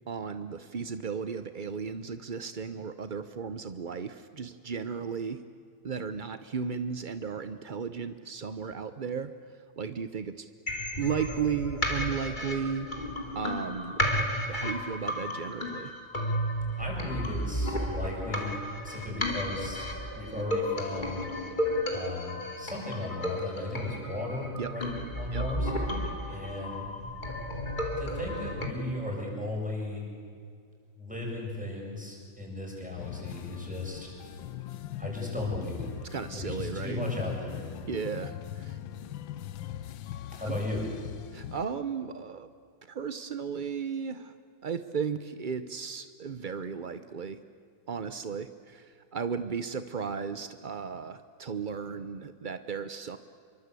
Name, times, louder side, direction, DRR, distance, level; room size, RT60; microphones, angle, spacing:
voice 1, 0.1-5.4 5.8-9.3 9.8-10.5 11.0-12.9 13.3-14.0 14.5-15.9 24.6-24.7 25.3-25.5 36.1-37.0 37.9-38.8 40.5-40.6 41.3-42.5 42.9-44.3 44.6-47.4 47.9-53.2, right 6 dB, 60° right, 11 dB, 0.5 m, -35 dB
sound 1, 10.7-28.7, equal, 25° left, 3.0 m, -33 dB
voice 2, 16.8-18.5 18.8-19.8 20.1-21.3 21.9-25.7 26.3-26.9 28.0-30.1 31.0-34.1 35.0-35.9 36.3-37.7 40.4-40.9, left 1 dB, 5° right, -2 dB, 7.6 m, -36 dB
sound 2, 33.0-41.7, left 12 dB, 85° left, 1.6 m, -40 dB
27.0 x 24.0 x 8.3 m, 2.3 s
omnidirectional pair, 2.1 m